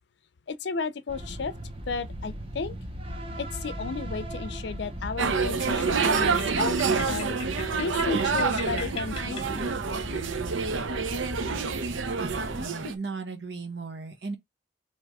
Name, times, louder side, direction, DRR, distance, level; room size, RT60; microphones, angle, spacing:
voice 1, 0.5-1.5 1.9-2.8 3.4-9.7, left 4 dB, 65° left, 0.5 m, -34 dB
sound 1, 1.1-12.6, equal, 30° right, 0.8 m, -38 dB
sound 2, 5.2-12.9, right 5 dB, 90° right, 0.6 m, -27 dB
sound 3, 5.6-10.1, left 5 dB, 30° left, 0.8 m, -41 dB
voice 2, 12.5-14.4, right 4 dB, 65° right, 1.3 m, -36 dB
3.4 x 3.0 x 4.7 m
head